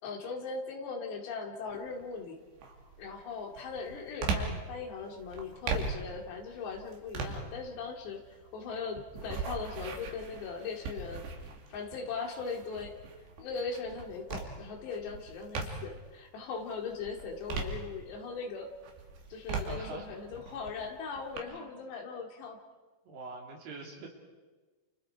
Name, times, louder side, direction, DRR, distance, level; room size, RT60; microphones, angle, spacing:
voice 1, 0.0-2.4 3.0-11.2 11.7-13.0 13.4-18.7 19.3-22.6, left 5 dB, 80° left, 2 dB, 4.7 m, -39 dB
sound 1, 1.7-2.1 2.6-16.1 16.5-18.4 18.8-21.4, right 4 dB, 75° right, 4.7 m, -39 dB
voice 2, 19.7-20.1 21.4-21.9 23.0-24.1, right 3 dB, 60° right, 1 dB, 4.6 m, -44 dB
29.5 x 29.0 x 4.8 m, 1.3 s
omnidirectional pair, 4.9 m